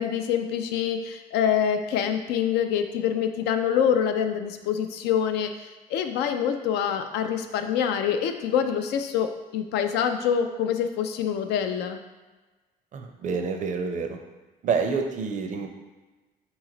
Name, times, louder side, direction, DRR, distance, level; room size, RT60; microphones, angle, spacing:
voice 1, 0.0-12.0, left 8 dB, 80° left, 7 dB, 0.4 m, -26 dB
voice 2, 12.9-14.2 14.6-15.7, right 5 dB, 50° right, 5 dB, 0.5 m, -28 dB
3.9 x 3.1 x 3.8 m, 1.2 s
cardioid pair, 110°, 17 cm